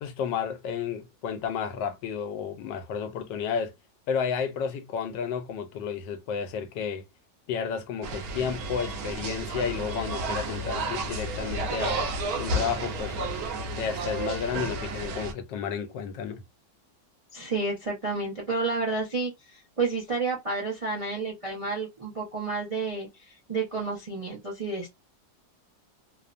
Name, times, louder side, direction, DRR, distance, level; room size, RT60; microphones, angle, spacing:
voice 1, 0.0-3.7 4.1-7.0 7.5-12.1 12.4-13.1 13.8-16.4, left 7 dB, 85° left, 1.3 m, -32 dB
sound 1, 8.0-15.3, right 2 dB, 65° right, 1.0 m, -32 dB
voice 2, 17.3-24.9, right 3 dB, 45° right, 0.4 m, -30 dB
3.2 x 2.0 x 2.4 m
omnidirectional pair, 1.9 m